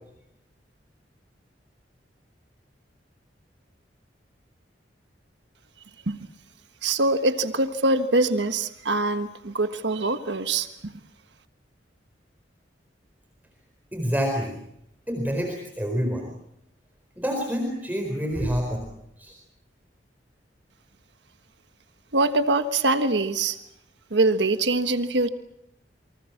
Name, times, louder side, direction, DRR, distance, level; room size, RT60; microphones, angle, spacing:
voice 1, 6.8-10.9 22.1-23.6 24.1-25.3, right 2 dB, 80° right, 9 dB, 1.4 m, -23 dB
voice 2, 13.9-14.6 15.1-16.3 17.2-18.8 19.2-19.3, equal, 10° right, 2 dB, 4.4 m, -27 dB
28.5 x 24.5 x 6.0 m, 0.80 s
head